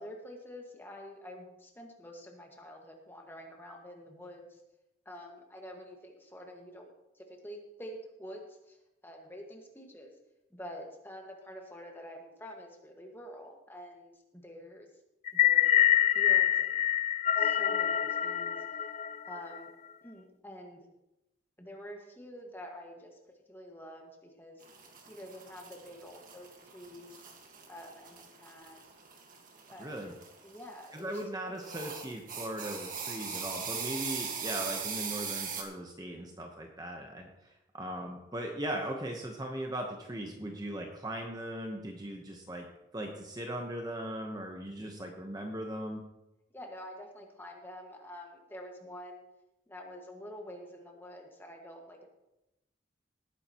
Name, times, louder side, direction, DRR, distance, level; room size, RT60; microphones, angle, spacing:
voice 1, 0.0-4.6 5.0-8.8 9.0-10.1 10.5-14.9 15.3-15.8 16.1-16.9 17.4-18.6 19.2-19.7 20.0-20.9 21.6-23.2 23.5-24.6 25.1-26.5 26.7-27.2 27.7-28.8 29.7-29.9 30.4-31.8 46.5-49.2 49.7-52.1, equal, 10° left, 1 dB, 1.7 m, -47 dB
sound 1, 15.3-19.6, left 11 dB, 35° left, 0.3 m, -26 dB
sound 2, 24.6-31.2 31.6-35.6, right 6 dB, 45° right, 1.7 m, -41 dB
voice 2, 29.8-30.1 30.9-37.3 37.7-42.7 42.9-46.0, right 1 dB, 20° right, 2 dB, 1.0 m, -38 dB
18.0 x 10.0 x 3.0 m, 0.93 s
head